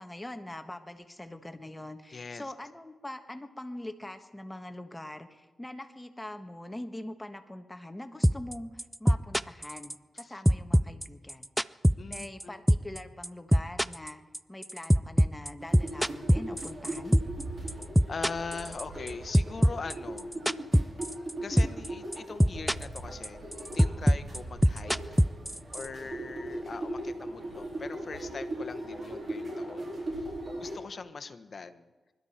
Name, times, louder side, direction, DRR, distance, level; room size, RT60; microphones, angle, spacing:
voice 1, 0.0-11.5 12.1-14.2 14.5-17.2, left 1 dB, 15° left, 6 dB, 1.4 m, -43 dB
voice 2, 2.1-2.5 10.2-10.4 12.0-12.6 17.6-17.8 18.1-20.3 21.4-25.2 25.7-31.9, left 4 dB, 55° left, 10 dB, 1.1 m, -41 dB
sound 1, 8.2-8.5 8.8-10.2 10.4-12.4 12.7-13.0 13.2-17.4 17.7-19.1 19.3-21.3 21.6-21.9 22.1-23.0 23.2-25.9, equal, 5° right, 0.4 m, -23 dB
sound 2, 15.6-30.8, right 1 dB, 50° right, 4.6 m, -39 dB
25.5 x 12.5 x 4.4 m, 1.2 s
cardioid pair, 70°, 0 cm